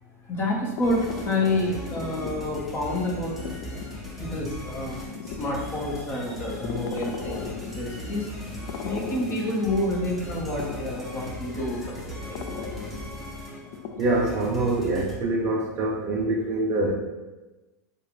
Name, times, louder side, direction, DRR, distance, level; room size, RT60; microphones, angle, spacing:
voice 1, 0.2-3.4 4.2-8.3 8.8-12.7, left 1 dB, 25° left, -3 dB, 1.2 m, -29 dB
sound 1, 0.5-16.0, left 6 dB, 50° left, 0.4 m, -40 dB
sound 2, 0.8-15.2, equal, ahead, 0.9 m, -39 dB
voice 2, 14.0-16.9, right 2 dB, 35° right, 0 dB, 0.5 m, -25 dB
6.6 x 2.4 x 3.1 m, 1.1 s
supercardioid pair, 135°, 9 cm